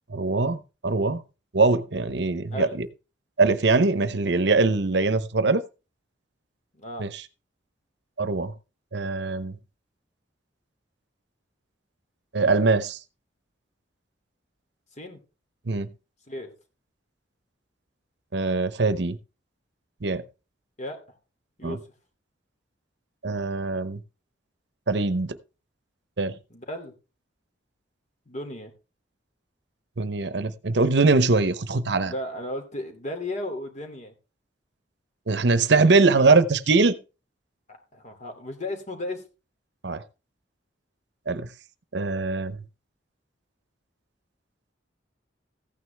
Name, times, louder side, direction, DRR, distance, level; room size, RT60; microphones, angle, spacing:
voice 1, 0.1-1.2 1.5-2.9 3.4-5.6 7.0-7.2 8.2-8.5 8.9-9.6 12.3-13.0 15.7-15.9 18.3-19.2 20.0-20.2 21.6-21.8 23.2-24.0 24.9-25.4 26.2-26.4 30.0-32.1 35.3-37.0 39.8-40.0 41.3-41.5 41.9-42.6, right 3 dB, 60° right, 0.8 m, -22 dB
voice 2, 26.5-26.9 28.3-28.7 32.0-34.1 37.7-39.2, left 1 dB, 40° left, 2.7 m, -35 dB
15.0 x 9.6 x 3.4 m
head